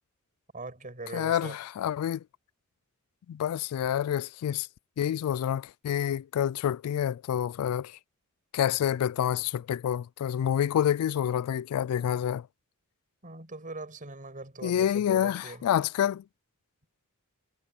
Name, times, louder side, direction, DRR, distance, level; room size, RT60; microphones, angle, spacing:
voice 1, 0.5-1.6 13.2-15.7, right 2 dB, 40° right, 7.5 m, -41 dB
voice 2, 1.1-2.2 3.3-4.7 5.0-8.0 8.5-12.5 14.6-16.2, left 10 dB, 80° left, 0.3 m, -28 dB
head